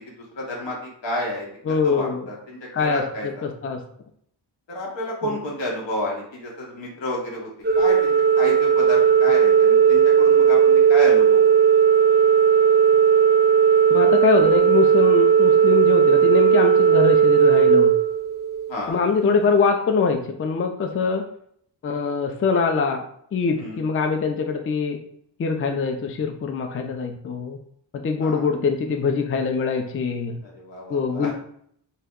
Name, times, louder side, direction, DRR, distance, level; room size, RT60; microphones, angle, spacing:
voice 1, 0.2-3.4 4.7-7.5 7.8-11.4 18.7-19.0 23.6-23.8 28.2-28.5 30.4-31.3, left 1 dB, 85° left, -3 dB, 1.2 m, -30 dB
voice 2, 1.7-2.3 2.7-3.8 5.2-5.4 13.9-17.9 18.9-21.3 21.8-23.0 23.3-25.0 25.4-27.6 27.9-30.4 30.9-31.3, left 5 dB, 30° left, 5 dB, 0.4 m, -23 dB
Organ, 7.6-18.7, right 7 dB, 25° right, 0.5 m, -16 dB
2.7 x 2.1 x 3.6 m, 0.67 s
cardioid pair, 65°, 43 cm